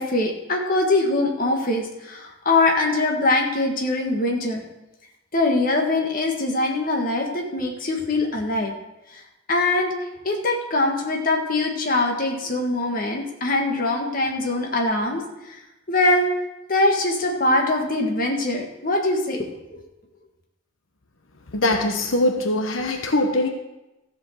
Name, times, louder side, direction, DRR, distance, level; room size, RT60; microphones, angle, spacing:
voice 1, 0.0-4.6 5.3-8.7 9.1-9.2 9.5-9.9 10.2-15.6 15.9-16.3 16.7-19.8, left 2 dB, 45° left, 1 dB, 1.6 m, -23 dB
voice 2, 21.5-23.5, left 1 dB, 90° left, 4 dB, 1.1 m, -22 dB
14.0 x 5.3 x 6.4 m, 0.96 s
head